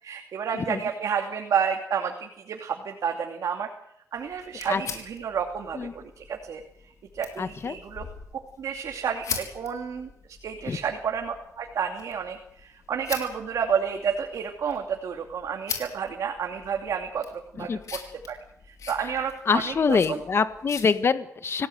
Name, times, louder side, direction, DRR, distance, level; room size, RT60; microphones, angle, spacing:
voice 1, 0.0-3.7 4.1-6.6 7.1-8.1 8.6-18.0 18.3-18.4 18.6-20.2, right 7 dB, 75° right, 3 dB, 2.7 m, -30 dB
sound 1, 4.2-20.9, left 6 dB, 70° left, 5.1 m, -42 dB
voice 2, 7.4-7.7 10.7-10.8 17.6-17.8 19.5-21.7, left 5 dB, 50° left, 10 dB, 1.6 m, -25 dB
26.5 x 17.0 x 8.0 m, 0.77 s
cardioid pair, 100°, 6 cm